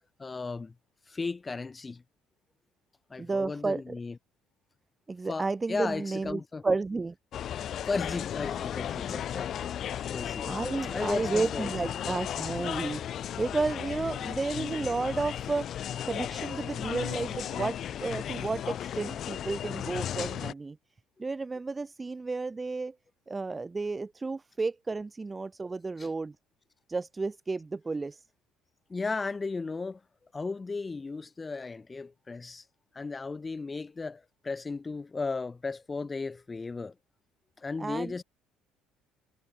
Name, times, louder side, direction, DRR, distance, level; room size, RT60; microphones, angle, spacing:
voice 1, 0.2-0.7 1.1-2.0 3.1-4.2 5.3-6.6 7.9-9.8 10.1-10.5 10.9-11.7 26.0-26.1 28.9-30.0 30.3-32.6 32.9-36.9 37.6-38.2, left 4 dB, 15° left, 2.8 m, -35 dB
voice 2, 3.2-4.0 5.1-7.1 9.1-9.2 10.4-15.7 16.0-20.8 21.2-22.9 23.3-26.3 26.9-28.2 37.8-38.1, right 3 dB, 15° right, 2.7 m, -32 dB
sound 1, 7.3-20.5, left 10 dB, 40° left, 6.3 m, -35 dB
cardioid pair, 165°, 0 cm